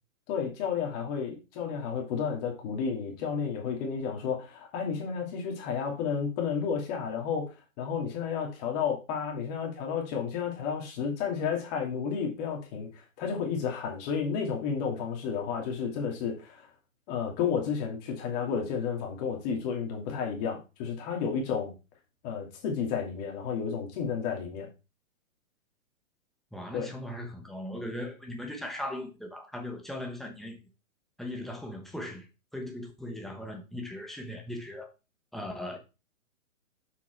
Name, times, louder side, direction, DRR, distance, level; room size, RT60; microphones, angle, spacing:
voice 1, 0.3-16.7 17.1-21.7 22.2-24.7 26.7-26.9, left 6 dB, 30° left, 2.6 m, -32 dB
voice 2, 26.5-30.6 31.2-32.3 32.5-34.9 35.3-35.8, left 1 dB, ahead, 1.0 m, -38 dB
7.1 x 5.9 x 4.6 m
hypercardioid pair, 150°, 40 cm